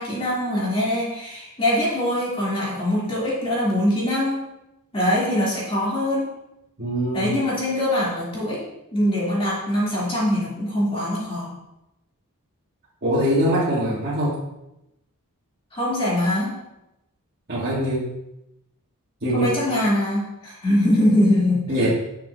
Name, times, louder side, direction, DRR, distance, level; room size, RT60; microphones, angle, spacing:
voice 1, 0.0-4.5 4.9-6.3 7.1-8.6 8.9-11.5 15.7-16.6 19.3-21.9, left 1 dB, 25° left, -7 dB, 2.9 m, -23 dB
voice 2, 6.8-7.3 13.0-14.4 17.5-18.1 19.2-19.6 21.7-21.9, equal, 45° right, -9 dB, 2.0 m, -23 dB
10.5 x 6.9 x 2.7 m, 0.88 s
head